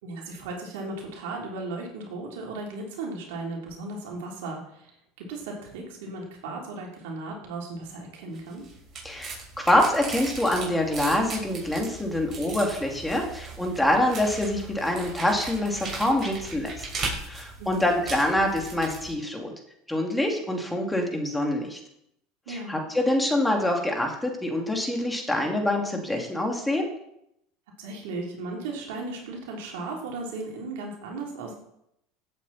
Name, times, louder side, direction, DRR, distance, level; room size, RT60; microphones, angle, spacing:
voice 1, 0.0-8.6 17.6-18.0 22.5-22.8 27.8-31.5, right 2 dB, 75° right, -1 dB, 3.8 m, -36 dB
sound 1, 8.4-19.1, right 3 dB, 40° right, 6.2 m, -38 dB
voice 2, 9.0-16.9 17.3-19.5 19.9-21.8 22.5-26.9, left 1 dB, 5° left, 1 dB, 2.9 m, -25 dB
16.0 x 8.3 x 4.4 m, 0.77 s
hypercardioid pair, 95°, 0 cm